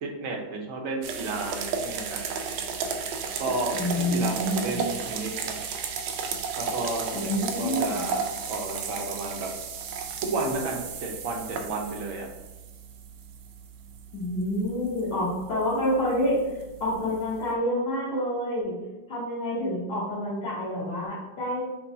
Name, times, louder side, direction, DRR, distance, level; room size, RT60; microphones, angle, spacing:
voice 1, 0.0-2.2 3.4-5.6 6.6-9.5 10.2-12.3, right 2 dB, 65° right, 1 dB, 0.8 m, -32 dB
sound 1, 1.0-17.5, right 5 dB, 90° right, 1.4 m, -34 dB
voice 2, 3.7-4.8 7.1-8.0 14.1-16.4 16.8-18.7 19.1-21.6, left 1 dB, 60° left, -10 dB, 1.8 m, -28 dB
6.0 x 3.0 x 2.6 m, 1.1 s
omnidirectional pair, 2.1 m